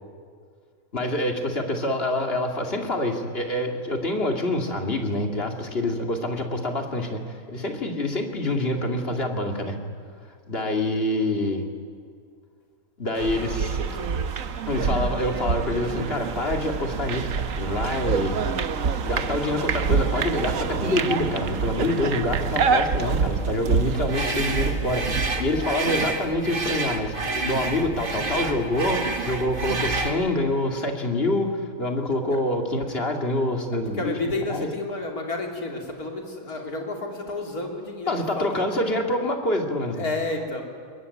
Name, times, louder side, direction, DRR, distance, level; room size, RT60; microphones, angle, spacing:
voice 1, 0.9-9.8 10.5-11.6 13.0-13.8 14.7-18.4 19.0-34.7 38.1-40.0, left 1 dB, 40° left, 3 dB, 2.6 m, -26 dB
sound 1, 13.2-25.7, right 6 dB, 65° right, 1.4 m, -26 dB
sound 2, 24.1-30.2, right 3 dB, 35° right, 2.0 m, -29 dB
voice 2, 33.9-38.7 40.0-40.6, left 2 dB, 80° left, 2 dB, 3.6 m, -31 dB
22.5 x 20.5 x 9.6 m, 2.1 s
omnidirectional pair, 1.5 m